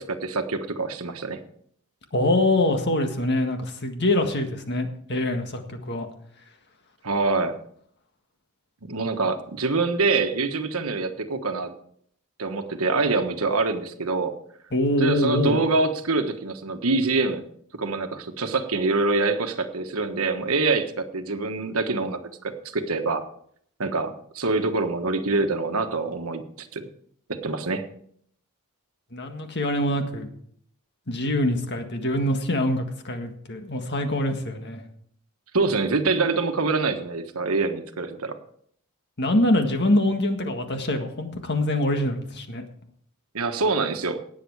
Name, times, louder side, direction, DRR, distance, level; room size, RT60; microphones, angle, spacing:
voice 1, 0.0-1.4 7.0-7.6 8.8-11.7 12.4-14.3 15.0-17.4 17.7-22.2 22.7-23.2 23.8-26.9 27.3-27.9 35.5-38.4 43.3-44.2, right 3 dB, 70° right, 7 dB, 1.3 m, -25 dB
voice 2, 2.1-6.1 14.7-15.6 29.1-30.3 31.1-34.8 39.2-42.6, left 1 dB, 50° left, 5 dB, 1.7 m, -24 dB
18.0 x 7.8 x 4.7 m, 0.65 s
head